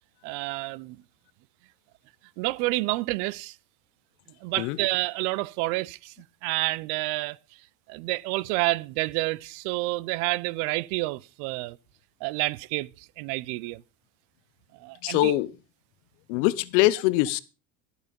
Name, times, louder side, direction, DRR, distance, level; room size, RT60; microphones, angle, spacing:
voice 1, 0.2-1.0 2.4-3.6 4.4-6.1 6.4-7.4 7.9-11.8 12.2-13.8 14.7-15.3, right 22 dB, 75° right, 0.7 m, -29 dB
voice 2, 15.0-15.5 16.3-17.4, left 17 dB, 85° left, 1.0 m, -23 dB
13.0 x 8.2 x 5.2 m
cardioid pair, 135°, 37 cm